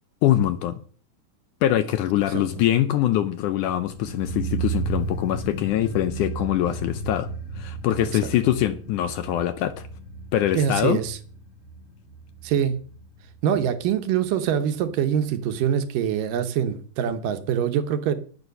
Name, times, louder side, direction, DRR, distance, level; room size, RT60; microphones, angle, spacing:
voice 1, 0.2-0.7 1.6-7.3 7.6-9.9 10.3-11.0, left 12 dB, 75° left, 1.9 m, -23 dB
sound 1, 3.5-14.6 14.8-14.9, right 4 dB, 40° left, 1.2 m, -34 dB
voice 2, 10.5-11.2 12.4-12.8 13.4-18.1, right 9 dB, 75° right, 2.5 m, -24 dB
10.5 x 9.4 x 6.6 m
omnidirectional pair, 4.1 m